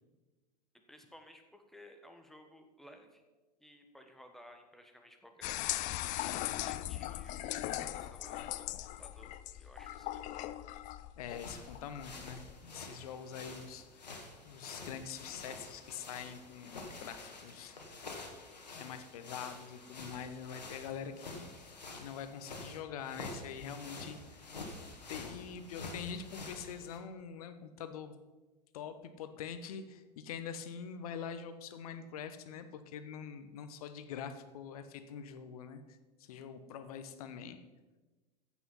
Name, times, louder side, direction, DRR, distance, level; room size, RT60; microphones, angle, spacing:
voice 1, 0.9-3.2 3.6-5.6 6.4-10.1 10.3-10.6, equal, ahead, 4 dB, 1.4 m, -57 dB
sound 1, 5.4-12.6, left 15 dB, 35° left, 0.5 m, -39 dB
voice 2, 11.2-14.1 14.4-18.1 18.7-24.5 24.7-28.1 28.7-37.6, left 7 dB, 60° left, 10 dB, 1.1 m, -45 dB
sound 2, 11.3-27.0, left 3 dB, 80° left, 1.7 m, -48 dB
15.0 x 6.2 x 5.7 m, 1.2 s
figure-of-eight pair, 85°, 21 cm